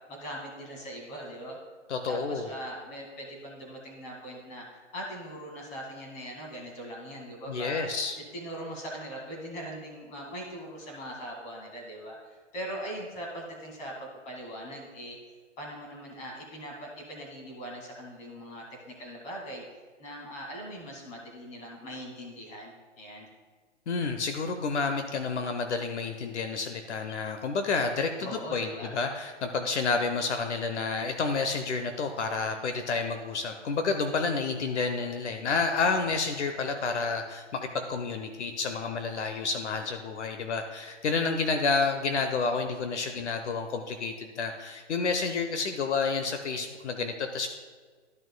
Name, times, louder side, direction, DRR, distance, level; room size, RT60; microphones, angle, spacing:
voice 1, 0.1-1.6 1.9-4.6 4.9-7.9 8.3-15.2 15.6-19.6 20.0-23.3 28.2-28.9, equal, 20° left, -1 dB, 2.1 m, -41 dB
voice 2, 1.9-2.5 7.5-8.1 23.9-47.5, left 4 dB, 65° left, 6 dB, 1.0 m, -30 dB
13.0 x 6.2 x 2.3 m, 1.5 s
hypercardioid pair, 150°, 36 cm